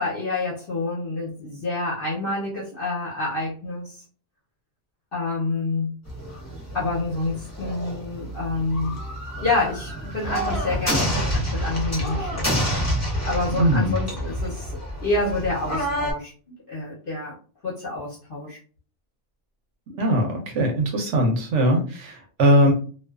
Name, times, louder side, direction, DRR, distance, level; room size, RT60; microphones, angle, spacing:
voice 1, 0.0-4.0 5.1-6.0 6.7-9.0 9.4-12.5 13.2-16.3 16.7-17.4 17.6-18.6, left 2 dB, 50° left, -4 dB, 0.7 m, -28 dB
sound 1, 6.1-16.1, equal, 20° left, 0.4 m, -28 dB
voice 2, 13.6-14.0 19.9-22.7, equal, 65° right, 1 dB, 0.9 m, -20 dB
2.3 x 2.3 x 2.3 m, 0.40 s
omnidirectional pair, 1.5 m